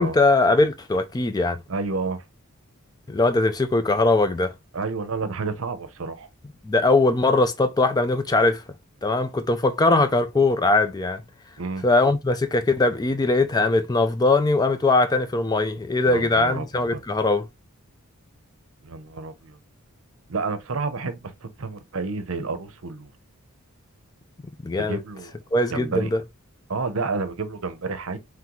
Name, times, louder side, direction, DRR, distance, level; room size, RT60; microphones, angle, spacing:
voice 1, 0.0-1.6 3.1-4.5 6.6-8.6 9.0-11.2 11.8-17.5 24.6-25.0 25.5-26.2, left 2 dB, 20° left, 0.3 m, -21 dB
voice 2, 1.7-2.2 4.7-6.3 11.6-11.8 16.1-17.0 18.8-19.6 20.3-23.1 24.9-25.4 25.7-26.1 26.7-28.2, right 4 dB, 65° right, 0.7 m, -30 dB
3.7 x 3.2 x 2.9 m
head